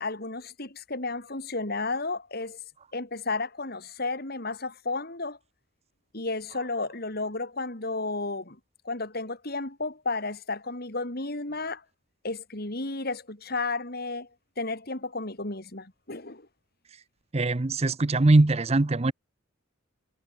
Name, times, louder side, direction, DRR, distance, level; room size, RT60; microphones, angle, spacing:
voice 1, 0.0-2.6 2.9-5.4 6.1-8.6 8.8-11.8 12.2-14.3 14.6-16.5, left 3 dB, 50° left, 3.3 m, -32 dB
voice 2, 17.3-19.1, right 2 dB, 30° right, 0.7 m, -21 dB
head